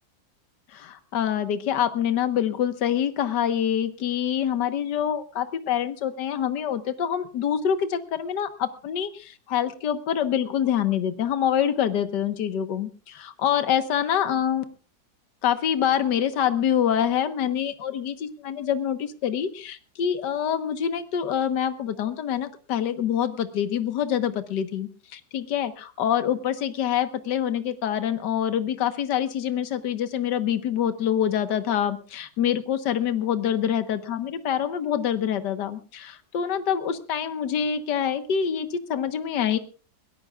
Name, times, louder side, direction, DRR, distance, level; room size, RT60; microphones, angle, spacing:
voice 1, 0.7-14.6 15.4-39.6, left 9 dB, 65° left, 10 dB, 1.8 m, -26 dB
22.5 x 18.0 x 2.4 m, 0.36 s
omnidirectional pair, 2.0 m